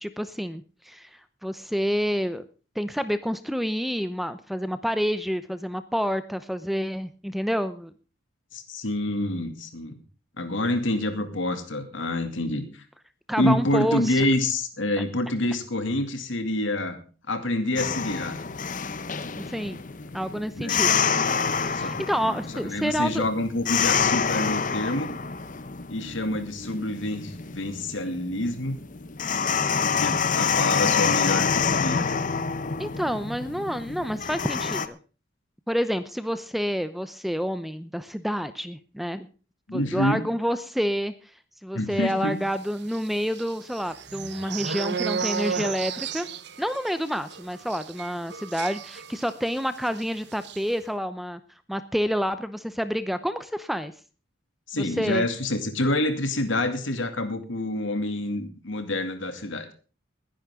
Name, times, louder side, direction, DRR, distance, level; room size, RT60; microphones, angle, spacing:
voice 1, 0.0-1.1 1.4-2.4 2.8-7.9 13.3-14.2 19.3-19.8 20.1-20.9 21.6-23.3 32.8-35.0 35.7-39.3 39.7-41.1 41.6-46.3 46.6-51.4 51.7-53.9 54.7-55.3, equal, ahead, 12 dB, 0.7 m, -28 dB
voice 2, 8.5-10.0 10.4-12.8 13.4-17.0 17.3-18.4 20.6-20.8 21.7-25.1 25.9-28.7 29.8-32.1 39.7-40.3 41.7-42.4 54.7-59.7, left 1 dB, 70° left, 8 dB, 2.5 m, -27 dB
sound 1, 17.8-34.9, left 6 dB, 40° left, 0.8 m, -27 dB
sound 2, 42.9-49.6 49.9-50.0 50.3-50.6, right 6 dB, 55° right, 0.9 m, -33 dB
20.5 x 10.5 x 3.7 m, 0.35 s
head